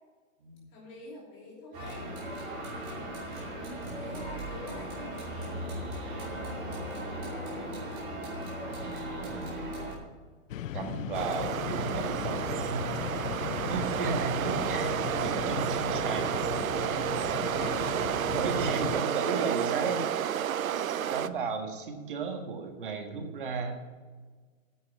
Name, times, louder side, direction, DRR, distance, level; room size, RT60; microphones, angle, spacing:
voice 1, 0.7-2.2 3.9-7.9 15.4-15.6 17.4-18.2 19.6-20.0 20.7-21.3, left 2 dB, 20° left, -3 dB, 2.9 m, -47 dB
sound 1, 1.7-9.9, right 1 dB, 15° right, 2.6 m, -37 dB
voice 2, 2.7-3.1 3.8-4.3 8.8-9.7 10.7-12.9 13.6-14.9 15.2-16.3 18.3-20.1 21.1-23.8, right 4 dB, 40° right, 4 dB, 1.6 m, -35 dB
sound 2, 10.5-19.0, left 10 dB, 70° left, 0.5 m, -36 dB
sound 3, 11.1-21.3, right 10 dB, 80° right, 0.7 m, -31 dB
9.2 x 7.5 x 7.3 m, 1.4 s
hypercardioid pair, 175°, 40 cm